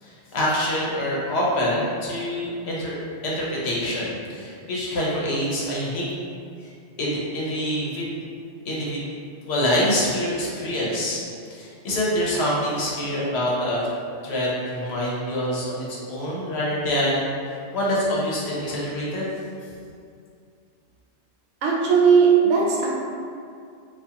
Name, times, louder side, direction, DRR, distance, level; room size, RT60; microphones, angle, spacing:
voice 1, 0.0-3.0 3.2-6.1 6.6-6.7 7.0-8.1 8.6-9.0 9.5-11.2 11.5-13.8 14.2-19.4, equal, 70° left, -5 dB, 0.9 m, -25 dB
voice 2, 21.6-22.9, right 6 dB, 85° right, -4 dB, 0.9 m, -17 dB
2.7 x 2.4 x 2.3 m, 2.4 s
omnidirectional pair, 1.2 m